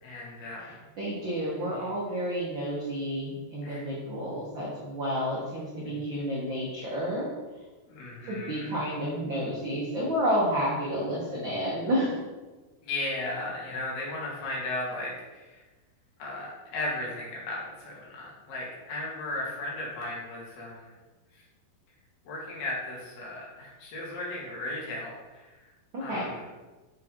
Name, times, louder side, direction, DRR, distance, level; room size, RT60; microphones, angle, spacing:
voice 1, 0.0-0.8 1.6-1.9 3.6-3.9 5.9-6.1 7.9-8.8 12.8-15.6 16.2-20.9 21.3-21.4 22.3-25.7 26.0-26.5, left 2 dB, 80° left, -4 dB, 3.9 m, -36 dB
voice 2, 0.6-7.3 8.3-12.2 25.9-26.3, equal, 80° right, -5 dB, 1.0 m, -30 dB
7.5 x 6.1 x 3.9 m, 1.2 s
omnidirectional pair, 4.5 m